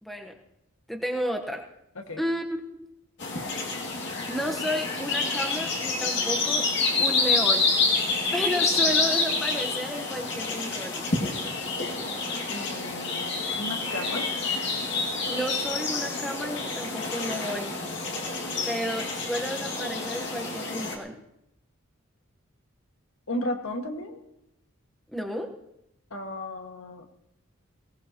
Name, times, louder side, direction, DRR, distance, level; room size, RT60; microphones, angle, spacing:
voice 1, 0.0-0.3 0.9-1.6 2.2-2.4 4.3-6.7 7.0-7.7 8.3-11.0 15.3-17.8 18.7-21.2 25.1-25.5, equal, ahead, 2 dB, 1.0 m, -32 dB
sound 1, 3.2-21.0, left 3 dB, 55° left, 2.1 m, -28 dB
voice 2, 12.5-14.3 23.3-24.2 26.1-27.1, left 1 dB, 85° left, 3 dB, 1.7 m, -34 dB
20.0 x 17.5 x 2.9 m, 0.85 s
head